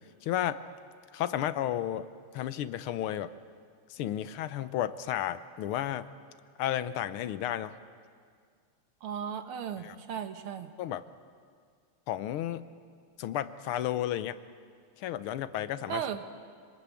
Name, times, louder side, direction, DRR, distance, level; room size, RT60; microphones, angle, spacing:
voice 1, 0.2-0.6 1.1-2.1 2.3-3.3 3.9-6.1 6.6-7.7 9.8-10.0 10.8-11.0 12.1-12.6 13.2-14.4 15.0-16.0, left 11 dB, 80° left, 13 dB, 1.7 m, -32 dB
voice 2, 9.0-10.7 15.9-16.2, right 8 dB, 80° right, 8 dB, 2.1 m, -36 dB
26.5 x 20.0 x 8.3 m, 2.1 s
omnidirectional pair, 2.4 m